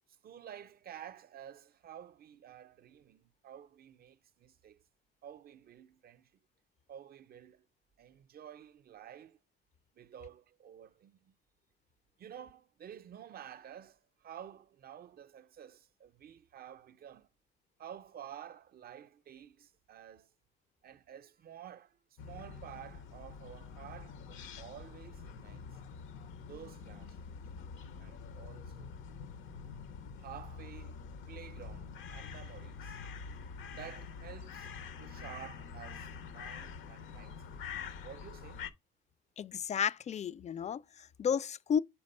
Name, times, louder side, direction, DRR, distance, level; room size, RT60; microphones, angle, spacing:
voice 1, 0.2-4.8 5.2-6.3 6.9-7.7 8.0-9.4 9.9-11.3 12.2-17.3 17.8-20.3 20.8-22.0 22.2-25.8 26.5-27.3 28.0-29.0 30.2-33.0 33.6-34.7 35.0-37.4 38.0-38.7, right 10 dB, 50° right, 0.5 m, -51 dB
sound 1, 22.2-38.7, left 5 dB, 85° left, 0.7 m, -46 dB
voice 2, 39.4-41.8, left 7 dB, 35° left, 0.3 m, -33 dB
5.2 x 4.4 x 5.3 m
cardioid pair, 90°, 20 cm